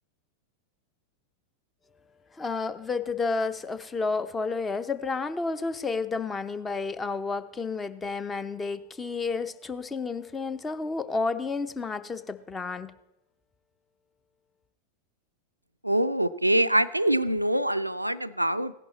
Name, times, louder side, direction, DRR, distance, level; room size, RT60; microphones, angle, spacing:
voice 1, 2.3-12.9, left 4 dB, 15° left, 13 dB, 0.6 m, -31 dB
voice 2, 15.8-18.7, right 1 dB, 85° right, 11 dB, 0.4 m, -24 dB
16.5 x 11.0 x 4.1 m, 0.89 s
figure-of-eight pair, 90°, 0 cm